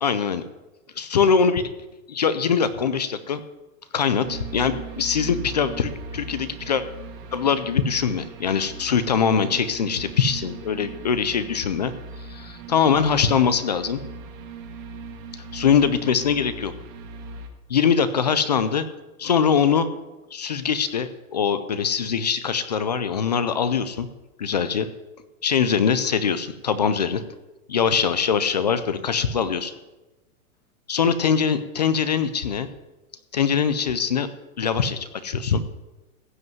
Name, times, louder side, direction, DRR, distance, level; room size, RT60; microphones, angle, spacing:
voice 1, 0.0-0.4 1.0-1.6 2.1-3.4 3.9-6.8 7.3-11.9 12.3-14.0 15.5-16.7 17.7-18.9 19.2-19.9 20.3-24.1 24.4-24.9 25.4-27.2 27.7-29.7 30.9-32.7 33.3-34.3 34.6-35.6, left 6 dB, 30° left, 13 dB, 0.4 m, -22 dB
sound 1, 4.2-17.5, right 3 dB, 25° right, 1.2 m, -39 dB
15.5 x 5.3 x 9.2 m, 1.1 s
supercardioid pair, 170°, 43 cm